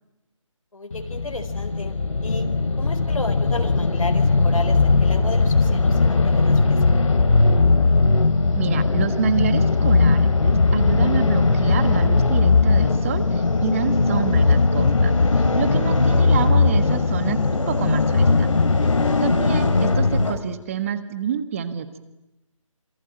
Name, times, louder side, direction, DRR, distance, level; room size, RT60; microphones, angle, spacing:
voice 1, 0.7-1.9 2.2-2.5 2.8-6.8 15.5-16.3 18.8-19.1, left 2 dB, 90° left, 5 dB, 4.3 m, -33 dB
sound 1, 0.9-20.4, left 3 dB, 70° left, 2.8 m, -19 dB
voice 2, 8.6-17.4 17.7-18.5 19.2-22.0, right 8 dB, 25° right, 11 dB, 1.5 m, -28 dB
27.0 x 23.5 x 9.0 m, 0.94 s
figure-of-eight pair, 160°, 17 cm